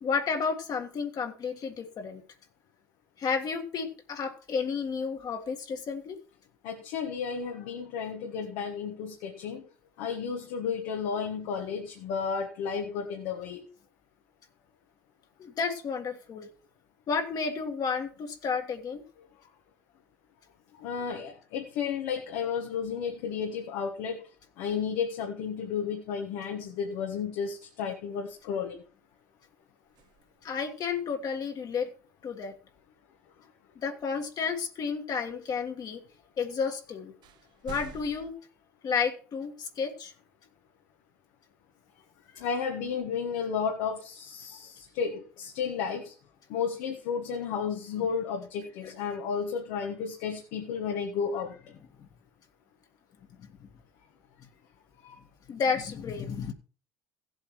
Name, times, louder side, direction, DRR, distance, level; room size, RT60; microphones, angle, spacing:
voice 1, 0.0-2.2 3.2-6.2 15.4-16.5 17.1-19.0 30.4-31.9 32.2-32.5 33.8-36.0 36.4-37.1 37.6-38.4 38.8-40.1 48.8-48.9 52.0-52.1 53.4-53.7 55.5-56.5, left 5 dB, 50° left, 1.8 m, -31 dB
voice 2, 6.6-9.7 10.0-13.7 20.7-24.2 24.6-28.8 42.3-46.1 46.5-51.6 55.0-55.2, left 6 dB, 70° left, 1.5 m, -33 dB
sound 1, 28.3-29.1 29.8-30.8 34.3-34.4 36.5-36.6 37.2-38.3, right 6 dB, 55° right, 1.0 m, -49 dB
16.0 x 8.0 x 3.2 m
hypercardioid pair, 70°, 9 cm